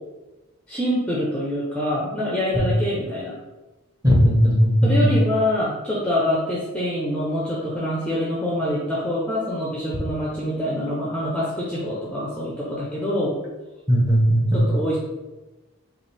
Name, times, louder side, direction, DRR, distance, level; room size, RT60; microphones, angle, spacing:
voice 1, 0.7-3.3 4.8-13.4 14.5-15.0, left 1 dB, 5° left, -6 dB, 0.6 m, -25 dB
voice 2, 4.0-5.2 13.9-14.7, equal, 15° right, -3 dB, 1.0 m, -17 dB
5.6 x 2.5 x 3.3 m, 1.1 s
head